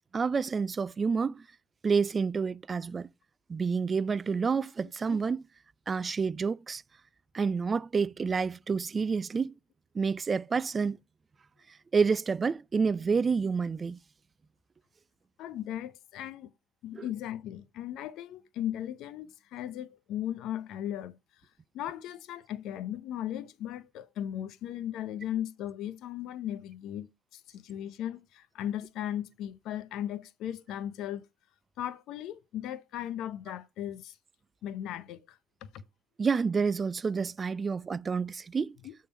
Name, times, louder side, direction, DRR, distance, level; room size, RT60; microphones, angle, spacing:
voice 1, 0.1-1.4 1.8-3.1 3.5-5.4 5.9-6.8 7.3-9.5 9.9-11.0 11.9-14.0 16.9-17.1 36.2-38.8, right 5 dB, 30° right, 0.3 m, -28 dB
voice 2, 15.4-16.5 16.8-21.1 21.7-31.2 31.8-34.2 34.6-35.8 38.8-38.9, left 11 dB, 65° left, 0.6 m, -37 dB
8.1 x 3.8 x 5.2 m
supercardioid pair, 85°, 0 cm